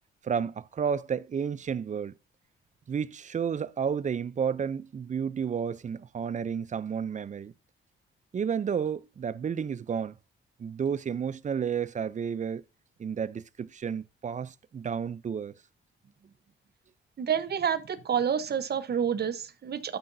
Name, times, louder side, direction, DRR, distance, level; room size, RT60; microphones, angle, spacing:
voice 1, 0.2-2.1 2.9-7.5 8.3-10.2 10.6-12.6 13.0-15.5, right 7 dB, 35° right, 0.5 m, -31 dB
voice 2, 17.2-20.0, right 8 dB, 55° right, 0.9 m, -28 dB
11.5 x 5.9 x 2.6 m
cardioid pair, 75°, 21 cm